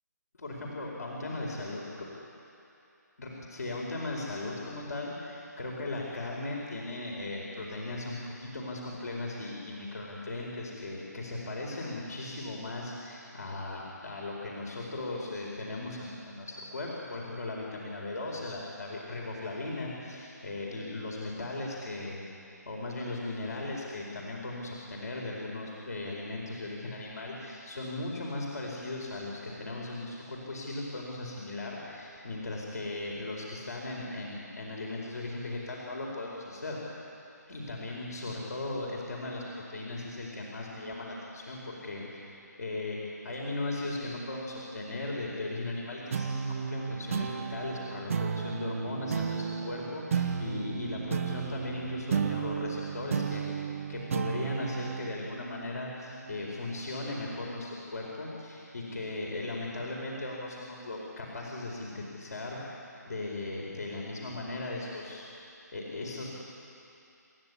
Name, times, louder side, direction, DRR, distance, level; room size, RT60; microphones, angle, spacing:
voice 1, 0.4-1.9 3.2-22.2 22.6-36.8 37.5-39.4 39.7-42.2 42.6-53.5 53.9-62.8 63.1-65.2 65.7-66.2, left 2 dB, 65° left, -3 dB, 4.8 m, -37 dB
sound 1, 46.1-56.9, right 6 dB, 45° right, 1.1 m, -34 dB
28.0 x 14.0 x 9.8 m, 2.7 s
figure-of-eight pair, 145°, 10 cm